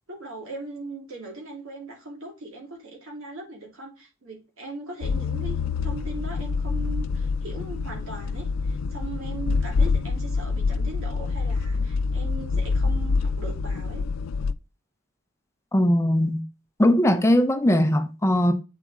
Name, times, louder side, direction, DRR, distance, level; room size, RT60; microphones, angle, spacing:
voice 1, 0.1-14.0, right 2 dB, 85° right, 2.9 m, -39 dB
sound 1, 5.0-14.5, left 4 dB, 85° left, 0.4 m, -26 dB
voice 2, 15.7-16.4 16.8-18.5, left 1 dB, 15° left, 0.5 m, -20 dB
8.4 x 4.1 x 3.6 m
head